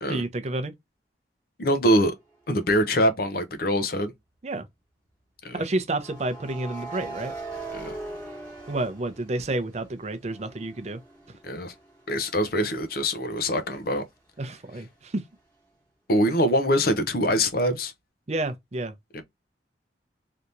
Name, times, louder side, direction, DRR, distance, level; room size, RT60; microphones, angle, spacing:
voice 1, 0.1-0.7 4.4-4.7 5.5-7.3 8.7-11.0 14.4-15.2 18.3-19.0, right 2 dB, 35° right, 0.5 m, -30 dB
voice 2, 1.6-2.1 2.5-4.1 5.4-5.6 7.7-7.9 11.4-11.7 12.1-14.0 16.1-17.9 19.1-19.2, equal, 55° left, 0.7 m, -24 dB
sound 1, 2.6-2.9 5.9-9.8 10.2-13.8, right 3 dB, 10° left, 1.4 m, -41 dB
3.4 x 2.9 x 2.5 m
head